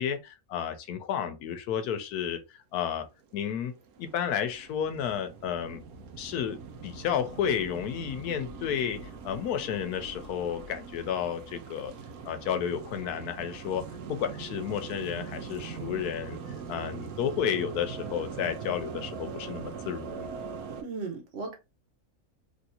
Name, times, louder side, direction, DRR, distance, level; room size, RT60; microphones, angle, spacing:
voice 1, 0.0-2.4 2.7-3.1 3.3-3.7 4.0-5.8 6.2-9.0 9.2-11.9 12.2-13.8 14.1-20.3, left 8 dB, 85° left, 1.1 m, -32 dB
Sonic Ambience Wire and Ice, 3.2-20.8, right 5 dB, 75° right, 1.1 m, -42 dB
voice 2, 20.8-21.5, right 4 dB, 50° right, 1.1 m, -36 dB
3.3 x 2.6 x 2.8 m
omnidirectional pair, 1.6 m